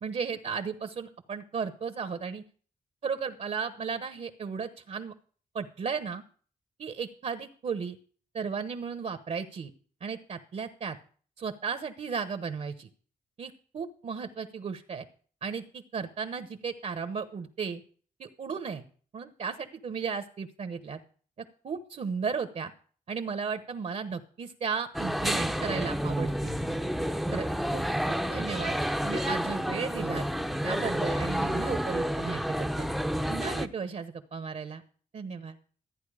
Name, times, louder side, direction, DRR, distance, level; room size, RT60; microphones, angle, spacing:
voice 1, 0.0-2.4 3.0-5.1 5.5-6.2 6.8-8.0 8.3-9.7 10.0-11.0 11.4-12.9 13.4-15.1 15.4-17.8 18.2-18.8 19.1-21.0 21.6-22.7 23.1-26.6 27.3-27.5 27.7-28.8 29.0-30.2 30.6-32.9 33.3-34.8 35.1-35.5, right 6 dB, 55° right, 9 dB, 1.1 m, -35 dB
sound 1, 24.9-33.7, equal, ahead, 0.7 m, -30 dB
14.0 x 9.5 x 4.9 m, 0.43 s
wide cardioid pair, 115°, 14 cm